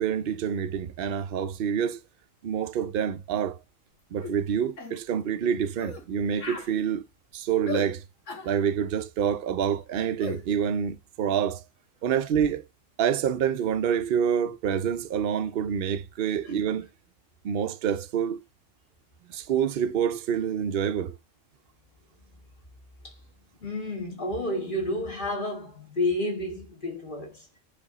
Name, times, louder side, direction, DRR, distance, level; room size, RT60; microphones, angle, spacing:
voice 1, 0.0-2.0 2.4-3.6 4.1-7.0 7.3-8.0 8.4-11.6 12.0-12.6 13.0-16.9 17.4-18.4 19.3-21.2, right 8 dB, 55° right, 0.7 m, -27 dB
sound 1, 4.2-4.4 4.8-5.0 5.8-6.0 6.4-6.7 7.7-7.9 8.3-8.5 10.2-10.4, left 4 dB, 90° left, 1.8 m, -36 dB
voice 2, 23.6-27.4, left 1 dB, 45° left, 2.6 m, -31 dB
9.9 x 3.4 x 4.1 m
omnidirectional pair, 1.2 m